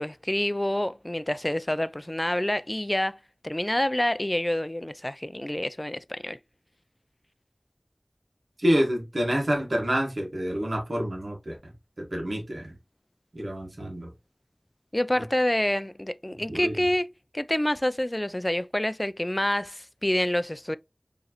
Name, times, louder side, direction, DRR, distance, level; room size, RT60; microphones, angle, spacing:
voice 1, 0.0-3.2 3.4-6.4 14.9-17.1 17.3-20.8, left 1 dB, 25° left, 0.3 m, -27 dB
voice 2, 8.6-11.6 12.0-12.7 13.3-14.1 16.5-16.7, equal, 80° right, 1.5 m, -27 dB
4.6 x 3.1 x 2.9 m
wide cardioid pair, 40°, 0 cm